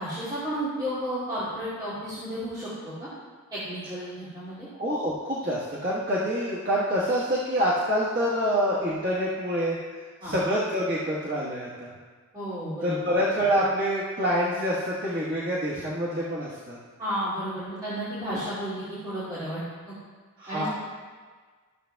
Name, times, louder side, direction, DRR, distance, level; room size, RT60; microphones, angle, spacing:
voice 1, 0.0-3.1 3.5-4.7 10.2-10.3 12.3-13.0 17.0-19.6 19.9-20.0 20.5-20.7, equal, 20° right, -13 dB, 2.4 m, -32 dB
voice 2, 4.8-9.8 10.2-11.9 12.8-16.8 18.3-18.4 20.4-20.7, equal, 45° right, -7 dB, 1.3 m, -26 dB
14.0 x 6.9 x 2.3 m, 1.5 s
head